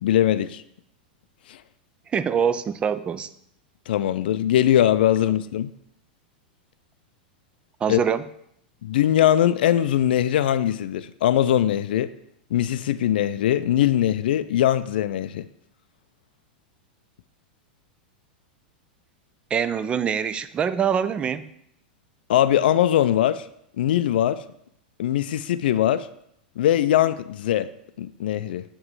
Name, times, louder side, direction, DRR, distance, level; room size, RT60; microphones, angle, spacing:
voice 1, 0.0-0.6 1.5-1.6 3.9-5.7 7.9-8.0 8.8-12.1 12.5-15.5 22.3-23.5 23.8-24.4 25.0-26.1 26.6-27.7 28.0-28.6, left 11 dB, 75° left, 0.3 m, -21 dB
voice 2, 2.1-3.3 7.8-8.2 19.5-21.5, right 7 dB, 20° right, 0.3 m, -24 dB
7.4 x 3.1 x 4.7 m
hypercardioid pair, 120°, 5 cm